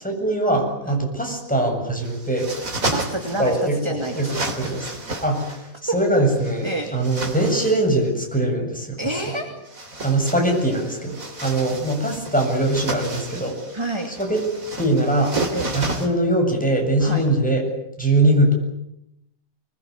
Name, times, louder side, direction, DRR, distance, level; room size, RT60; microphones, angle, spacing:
voice 1, 0.0-2.5 3.4-4.9 5.2-9.0 10.0-13.6 14.2-14.5 14.8-15.4 15.7-17.6 18.0-18.6, right 1 dB, 5° left, 1 dB, 7.6 m, -22 dB
sound 1, 2.0-3.7 4.0-5.6 6.3-7.9 9.6-16.1, right 2 dB, 70° right, 4.1 m, -31 dB
voice 2, 2.9-4.8 5.9-6.0 6.6-6.9 9.0-9.5 13.7-14.1 15.5-15.7 17.0-17.2, right 2 dB, 20° right, 3 dB, 2.7 m, -28 dB
25.5 x 20.5 x 9.6 m, 0.82 s
omnidirectional pair, 1.5 m